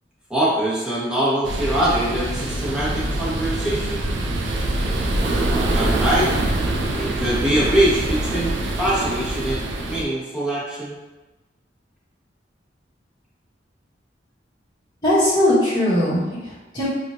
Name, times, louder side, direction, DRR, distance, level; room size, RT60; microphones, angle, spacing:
voice 1, 0.3-4.1 5.5-6.3 6.9-8.5 8.8-9.6 9.9-11.0, right 1 dB, 5° right, -9 dB, 1.1 m, -23 dB
sound 1, 1.4-10.0, right 1 dB, 90° right, 0.5 m, -24 dB
voice 2, 15.0-16.9, left 1 dB, 25° left, -12 dB, 1.3 m, -19 dB
4.5 x 2.4 x 2.5 m, 1.1 s
head